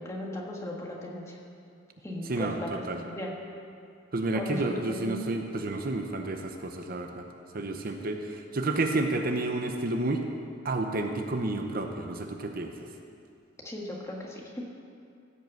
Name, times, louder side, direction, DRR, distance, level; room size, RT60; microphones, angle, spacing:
voice 1, 0.0-1.4 2.0-3.3 4.3-5.2 7.5-7.6 13.6-14.7, left 1 dB, 15° left, -2 dB, 1.4 m, -37 dB
voice 2, 2.3-3.0 4.1-7.3 7.5-10.2 10.6-12.7, right 2 dB, 50° right, 4 dB, 0.7 m, -30 dB
15.5 x 5.5 x 7.7 m, 2.5 s
head